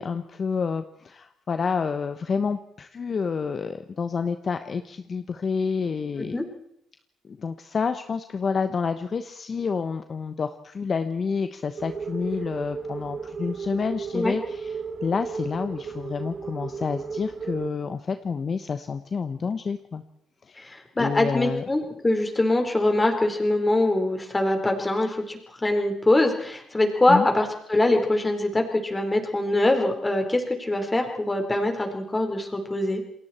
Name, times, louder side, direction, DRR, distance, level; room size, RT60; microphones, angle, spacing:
voice 1, 0.0-6.4 7.4-20.0 20.5-20.7 21.0-21.6 27.1-27.3, left 5 dB, 45° left, 9 dB, 1.1 m, -29 dB
sound 1, 11.8-17.7, right 5 dB, 45° right, 2.1 m, -34 dB
voice 2, 20.6-33.0, left 1 dB, 20° left, 4 dB, 4.4 m, -23 dB
29.0 x 20.5 x 4.4 m, 0.72 s
cardioid pair, 90°, 0 cm